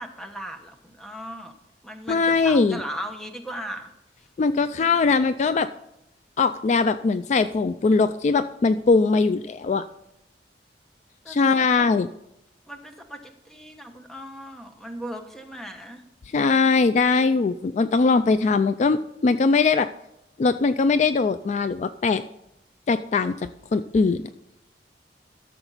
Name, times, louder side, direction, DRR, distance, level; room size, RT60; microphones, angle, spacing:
voice 1, 0.0-1.5 1.8-3.9 4.7-5.2 11.2-12.0 12.7-16.0, equal, ahead, 5 dB, 1.0 m, -38 dB
voice 2, 2.1-2.8 4.4-5.7 6.4-9.8 11.3-12.1 16.3-19.9 20.4-22.2 22.9-24.2, left 4 dB, 40° left, 12 dB, 0.3 m, -21 dB
13.0 x 7.0 x 4.0 m, 0.84 s
head